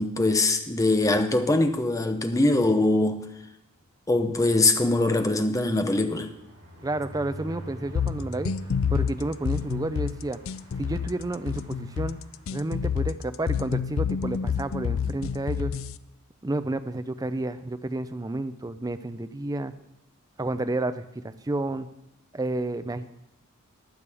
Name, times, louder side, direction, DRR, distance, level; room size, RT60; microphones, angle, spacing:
voice 1, 0.0-3.2 4.1-6.3, left 2 dB, 15° left, 0.7 m, -22 dB
sound 1, 4.7-12.9 13.4-13.5 13.8-13.9 14.2-14.4, right 1 dB, 70° right, 5.1 m, -45 dB
voice 2, 6.8-8.5 8.9-10.4 10.8-12.2 12.5-15.7 16.4-19.7 20.4-21.9 22.3-23.1, right 2 dB, 15° right, 0.5 m, -30 dB
sound 2, 8.0-16.0, left 7 dB, 65° left, 0.4 m, -28 dB
15.5 x 10.5 x 3.4 m
head